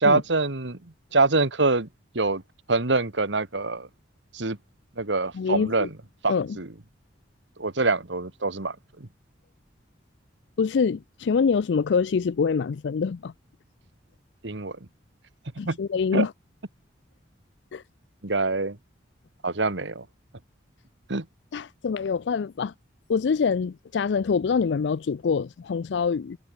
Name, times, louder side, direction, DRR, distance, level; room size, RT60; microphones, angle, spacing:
voice 1, 0.0-0.8 1.1-1.9 2.1-2.4 2.7-3.9 4.3-4.6 5.0-5.9 6.2-6.7 7.6-9.1 14.4-14.8 15.6-15.8 16.1-16.3 18.2-18.8 19.4-20.1 21.1-21.3, right 3 dB, 75° right, 1.8 m, -25 dB
voice 2, 5.3-5.9 6.3-6.6 10.6-13.3 15.6-16.3 17.7-17.8 21.5-22.7 23.1-26.4, left 5 dB, 70° left, 0.4 m, -25 dB
head